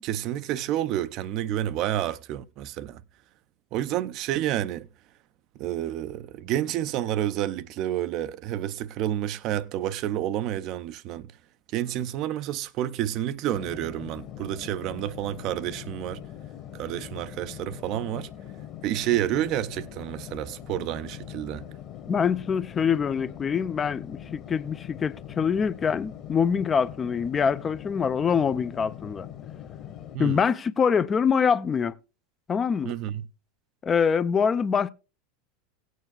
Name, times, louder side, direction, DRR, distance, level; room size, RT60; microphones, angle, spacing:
voice 1, 0.0-3.0 3.7-4.9 5.6-11.3 11.7-16.2 16.7-18.3 18.8-21.6 30.1-30.4 32.8-33.3, right 12 dB, 45° right, 0.5 m, -29 dB
sound 1, 13.5-30.2, left 10 dB, 40° left, 1.4 m, -42 dB
voice 2, 22.1-29.3 30.2-31.9 32.5-32.9 33.8-34.9, left 6 dB, 25° left, 0.5 m, -24 dB
17.5 x 9.3 x 2.3 m
figure-of-eight pair, 80°, 0 cm